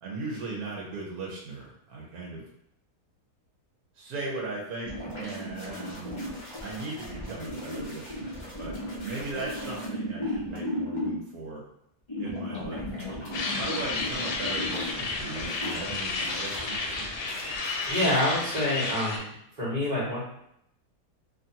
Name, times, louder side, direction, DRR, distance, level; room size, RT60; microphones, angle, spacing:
voice 1, 0.0-2.4 3.9-6.2 6.6-8.7 9.0-11.6 12.2-12.9 13.6-17.2, right 2 dB, 70° right, -3 dB, 1.1 m, -38 dB
sound 1, 4.8-11.1 12.1-18.8 19.1-19.2, left 1 dB, 35° left, 0.5 m, -36 dB
sound 2, 13.3-19.2, left 3 dB, 90° left, 1.2 m, -32 dB
voice 2, 17.9-19.3 19.6-20.2, left 1 dB, 30° right, -7 dB, 1.1 m, -27 dB
2.8 x 2.5 x 2.7 m, 0.74 s
omnidirectional pair, 1.7 m